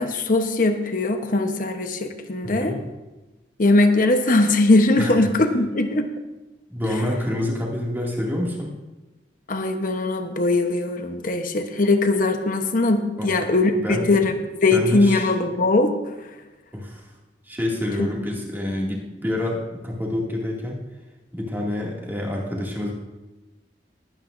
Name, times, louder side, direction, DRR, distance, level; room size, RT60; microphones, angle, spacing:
voice 1, 0.0-2.7 3.6-6.1 9.5-14.3 14.6-15.9 18.0-18.1, left 2 dB, 50° left, 6 dB, 1.0 m, -20 dB
voice 2, 2.4-2.8 5.0-5.3 6.7-8.7 13.2-13.4 13.8-14.3 14.7-15.3 16.7-17.1 17.5-20.8 21.3-22.9, left 1 dB, 10° right, -3 dB, 2.2 m, -27 dB
21.0 x 9.2 x 2.6 m, 1.1 s
head